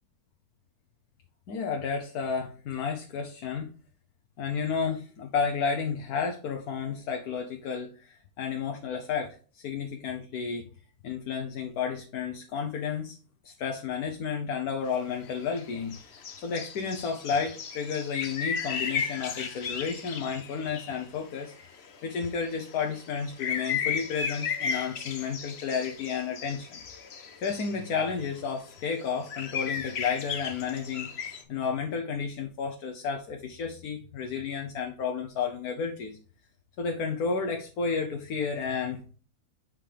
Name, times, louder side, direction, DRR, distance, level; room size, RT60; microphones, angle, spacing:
voice 1, 1.5-3.7 4.4-10.7 11.0-13.2 13.4-21.5 22.0-26.8 27.4-31.1 31.5-36.2 36.8-39.0, left 6 dB, 75° left, 3 dB, 1.3 m, -32 dB
sound 1, 15.0-15.1 15.3-21.0 21.4-27.9 28.2-31.4, left 6 dB, 50° left, 1.0 m, -35 dB
7.6 x 4.9 x 3.3 m, 0.40 s
omnidirectional pair, 1.6 m